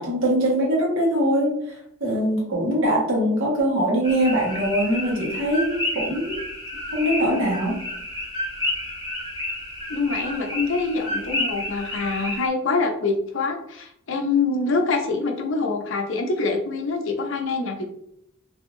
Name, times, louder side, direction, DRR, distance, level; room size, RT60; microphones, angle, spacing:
voice 1, 0.0-6.4 6.9-7.8, equal, 75° right, -3 dB, 1.3 m, -22 dB
sound 1, 4.0-12.5, left 1 dB, 20° right, 1.2 m, -30 dB
voice 2, 9.9-17.8, left 3 dB, 65° left, 3 dB, 0.6 m, -25 dB
3.4 x 2.7 x 2.5 m, 0.76 s
head